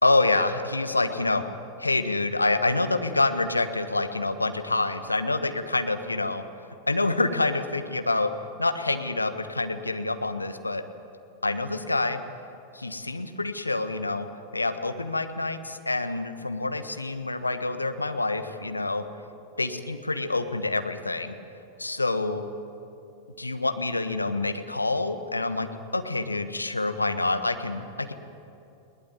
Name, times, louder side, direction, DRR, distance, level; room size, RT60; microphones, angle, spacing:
voice 1, 0.0-1.4 1.8-6.4 6.9-8.3 8.6-10.8 11.4-12.2 12.7-14.3 14.5-19.0 19.6-21.4 21.8-22.4 23.4-25.7 25.9-28.1, left 2 dB, 80° left, 9 dB, 1.3 m, -27 dB
21.0 x 18.5 x 9.5 m, 2.7 s
figure-of-eight pair, 90°, 0 cm